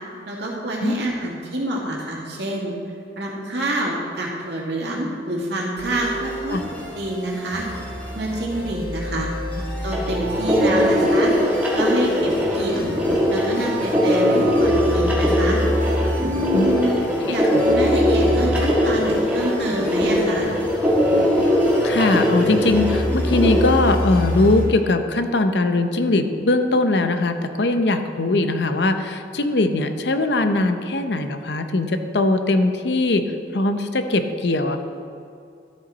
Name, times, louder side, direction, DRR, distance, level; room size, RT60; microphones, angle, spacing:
voice 1, 0.3-2.7 3.2-9.3 9.8-12.9 13.3-15.6 16.2-16.9 17.3-20.5, right 1 dB, 70° right, -3 dB, 2.2 m, -27 dB
sound 1, 5.8-24.7, equal, 10° left, 2.4 m, -28 dB
sound 2, 9.9-23.6, equal, 10° right, 1.6 m, -20 dB
voice 2, 17.3-17.6 21.8-33.2 33.5-34.8, left 2 dB, 70° left, 8 dB, 0.7 m, -21 dB
12.5 x 8.4 x 4.0 m, 2.4 s
head